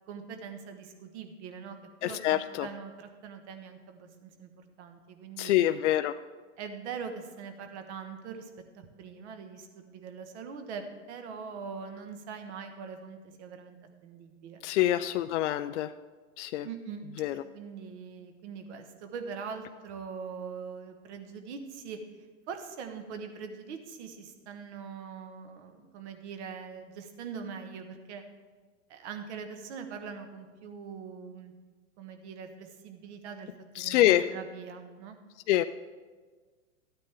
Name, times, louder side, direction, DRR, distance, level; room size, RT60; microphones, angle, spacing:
voice 1, 0.1-5.5 6.6-8.5 8.7-13.8 14.0-14.6 16.6-17.0 17.5-22.0 22.5-28.2 28.9-31.5 32.0-33.5 33.8-35.2, right 6 dB, 55° right, 6 dB, 1.4 m, -42 dB
voice 2, 2.0-2.7 5.4-6.2 14.6-15.9 16.4-16.7 17.2-17.4 33.8-34.3 35.5-35.6, left 13 dB, 60° left, 10 dB, 0.5 m, -26 dB
13.0 x 9.0 x 3.5 m, 1.4 s
hypercardioid pair, 120°, 40 cm